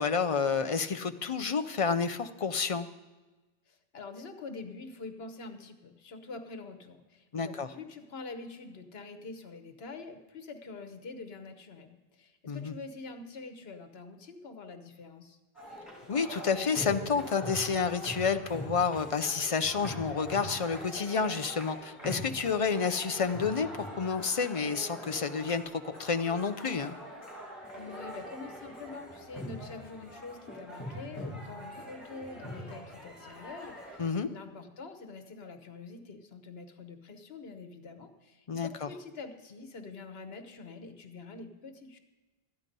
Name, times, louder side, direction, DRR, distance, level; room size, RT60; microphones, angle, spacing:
voice 1, 0.0-2.9 7.3-7.7 12.5-12.7 16.1-23.7 24.0-27.0 34.0-34.3 38.5-38.7, left 5 dB, 45° left, 9 dB, 0.5 m, -29 dB
voice 2, 3.7-15.4 27.7-42.0, left 3 dB, 75° left, 8 dB, 1.3 m, -45 dB
sound 1, 15.5-34.0, equal, 15° left, 4.2 m, -43 dB
13.5 x 9.9 x 5.2 m, 1.2 s
omnidirectional pair, 1.0 m